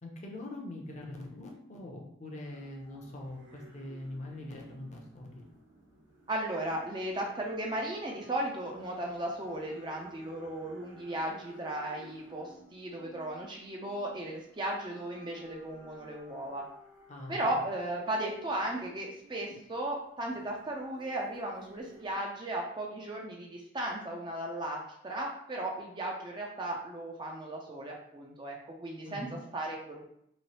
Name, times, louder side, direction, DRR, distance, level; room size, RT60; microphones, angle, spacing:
voice 1, 0.0-5.5 17.1-17.6 29.0-29.4, left 1 dB, 35° left, 0 dB, 0.6 m, -43 dB
sound 1, 2.4-22.2, right 1 dB, 70° right, 1.2 m, -56 dB
voice 2, 6.3-16.6 17.3-29.3 29.5-30.1, right 1 dB, 20° right, 0 dB, 0.4 m, -36 dB
3.1 x 3.0 x 2.9 m, 0.74 s
head